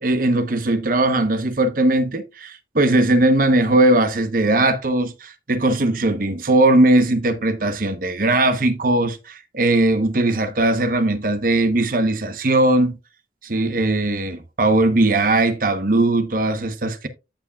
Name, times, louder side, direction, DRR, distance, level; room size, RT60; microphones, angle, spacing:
voice 1, 0.0-12.9 13.4-17.1, right 2 dB, 50° right, 0.9 m, -19 dB
13.5 x 5.0 x 2.3 m
head